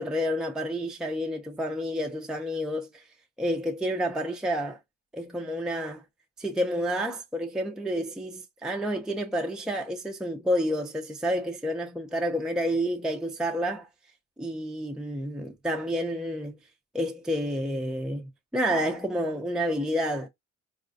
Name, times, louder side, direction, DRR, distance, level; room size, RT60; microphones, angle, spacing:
voice 1, 0.0-3.0 3.4-4.8 5.1-6.0 6.4-13.9 14.4-16.6 16.9-20.3, equal, ahead, 0.4 m, -29 dB
4.0 x 2.2 x 2.5 m
cardioid pair, 90°, 30 cm